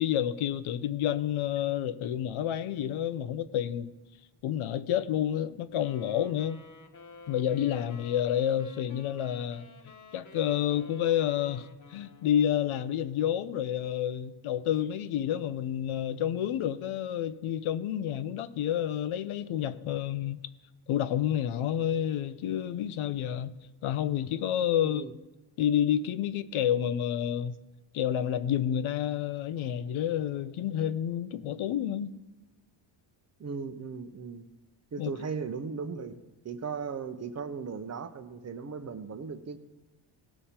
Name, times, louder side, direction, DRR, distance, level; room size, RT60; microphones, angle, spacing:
voice 1, 0.0-3.9 4.4-6.6 7.3-9.7 10.1-20.4 20.9-25.0 25.6-27.6 27.9-32.1 35.0-35.1, left 10 dB, 75° left, 0.7 m, -29 dB
sound 1, 5.8-12.8, left 4 dB, 35° left, 1.2 m, -52 dB
voice 2, 24.8-25.1 33.4-34.5 34.9-36.2 36.4-39.6, right 5 dB, 30° right, 0.7 m, -37 dB
18.0 x 6.9 x 4.3 m
cardioid pair, 125°, 50 cm